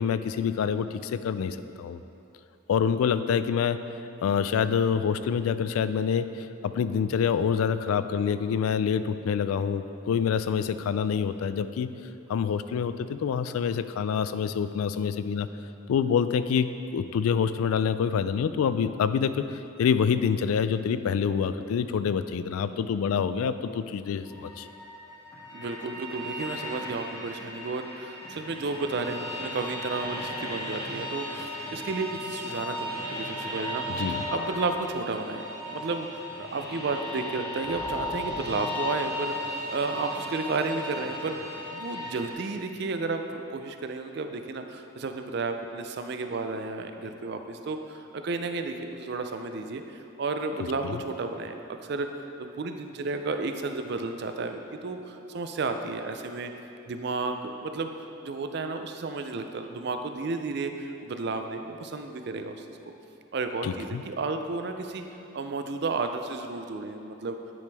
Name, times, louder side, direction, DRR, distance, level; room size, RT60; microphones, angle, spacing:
voice 1, 0.0-2.0 2.7-3.8 4.2-11.9 12.3-15.5 15.9-19.4 19.8-24.7 33.9-34.2 50.8-51.0 63.6-64.0, left 7 dB, 85° left, 12 dB, 0.3 m, -26 dB
sound 1, 24.3-42.3, left 1 dB, 15° left, 1.2 m, -36 dB
voice 2, 25.5-33.8 34.3-52.1 52.4-56.5 56.8-57.9 58.2-62.7 63.3-65.0 65.3-67.4, right 3 dB, 50° right, 6 dB, 0.4 m, -32 dB
9.3 x 5.1 x 3.4 m, 2.7 s
head